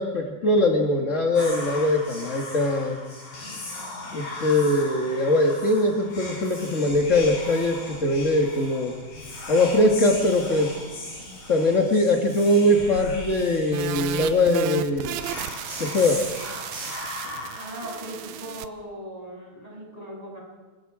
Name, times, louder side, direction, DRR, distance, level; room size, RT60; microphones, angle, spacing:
voice 1, 0.0-3.0 4.1-8.9 9.5-10.7 11.5-15.2 15.8-16.2, left 1 dB, 60° left, 1 dB, 0.7 m, -22 dB
Whispering, 1.3-18.5, left 2 dB, 90° left, 9.7 m, -37 dB
sound 1, 13.7-18.7, right 13 dB, 85° right, 2.7 m, -34 dB
voice 2, 17.5-20.4, equal, 10° right, -3 dB, 7.4 m, -38 dB
28.0 x 22.0 x 4.9 m, 1.3 s
omnidirectional pair, 4.3 m